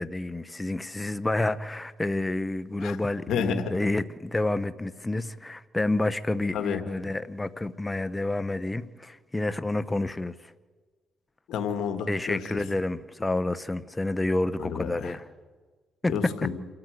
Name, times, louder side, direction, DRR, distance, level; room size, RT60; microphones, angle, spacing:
voice 1, 0.0-10.5 12.1-15.2 16.0-16.1, left 2 dB, 15° left, 13 dB, 0.8 m, -29 dB
voice 2, 3.3-3.7 6.5-6.8 11.5-12.6 14.6-15.1 16.1-16.5, left 7 dB, 75° left, 7 dB, 1.8 m, -30 dB
27.5 x 14.0 x 8.1 m, 1.4 s
cardioid pair, 90°, 0 cm